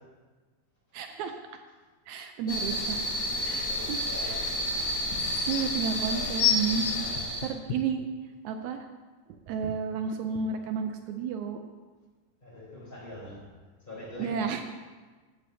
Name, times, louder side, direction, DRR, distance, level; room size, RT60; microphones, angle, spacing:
voice 1, 0.9-1.4 2.1-3.0 3.4-4.0 4.2-4.4 5.2-6.9 7.4-8.1 8.4-8.8 9.3-11.6 14.2-14.6, right 6 dB, 75° right, 6 dB, 1.8 m, -32 dB
sound 1, 2.5-7.5, left 1 dB, 35° left, 2.2 m, -31 dB
voice 2, 3.3-4.5 6.0-7.4 12.4-13.4 13.9-14.3, left 1 dB, 15° left, -6 dB, 3.8 m, -44 dB
sound 2, 4.7-4.8 5.1-5.7 6.4-8.0 8.7-8.8, left 9 dB, 75° left, 1.9 m, -28 dB
15.0 x 11.5 x 2.8 m, 1.4 s
omnidirectional pair, 3.7 m